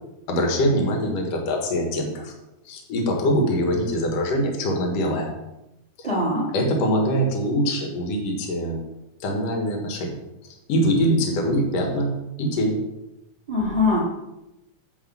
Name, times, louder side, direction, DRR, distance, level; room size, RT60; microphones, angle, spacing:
voice 1, 0.3-2.3 2.7-5.3 6.0-6.1 6.5-8.8 9.2-10.2 10.7-12.8, equal, 55° left, 1 dB, 2.5 m, -23 dB
voice 2, 6.0-6.5 13.5-14.0, left 2 dB, 10° right, -5 dB, 2.8 m, -22 dB
9.4 x 4.2 x 7.2 m, 0.93 s
omnidirectional pair, 3.7 m